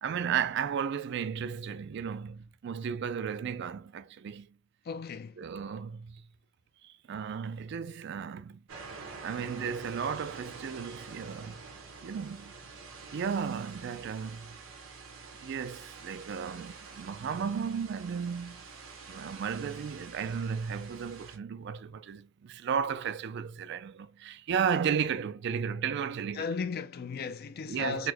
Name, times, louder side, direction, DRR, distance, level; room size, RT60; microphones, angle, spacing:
voice 1, 0.0-4.5 5.4-6.2 6.8-8.6 9.2-11.6 12.0-12.5 13.1-14.5 15.4-18.6 19.1-26.5 27.7-28.1, right 7 dB, 60° right, 0.3 m, -34 dB
voice 2, 4.8-5.4 26.3-28.1, left 5 dB, 50° left, 0.4 m, -36 dB
sound 1, 8.7-21.4, right 4 dB, 85° right, 1.0 m, -47 dB
4.1 x 2.1 x 2.8 m
head